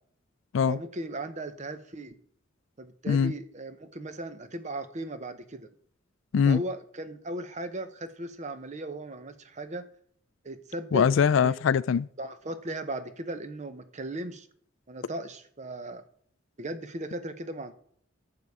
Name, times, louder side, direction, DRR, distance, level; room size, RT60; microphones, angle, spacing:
voice 1, 0.7-2.1 2.8-5.7 6.5-9.8 10.4-11.1 11.4-11.6 12.2-14.5 14.9-16.0 16.6-17.7, right 1 dB, 35° right, 0.8 m, -37 dB
voice 2, 10.9-12.1, left 7 dB, 70° left, 0.3 m, -22 dB
11.5 x 6.7 x 4.8 m
head